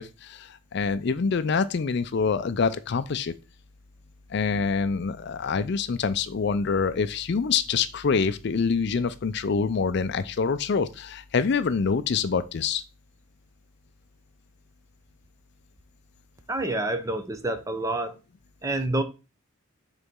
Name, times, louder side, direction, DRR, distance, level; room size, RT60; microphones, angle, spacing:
voice 1, 0.0-3.3 4.3-12.8, left 5 dB, 55° left, 0.4 m, -26 dB
voice 2, 16.5-18.2 18.6-19.0, right 2 dB, 15° right, 0.6 m, -28 dB
6.8 x 4.1 x 3.6 m
head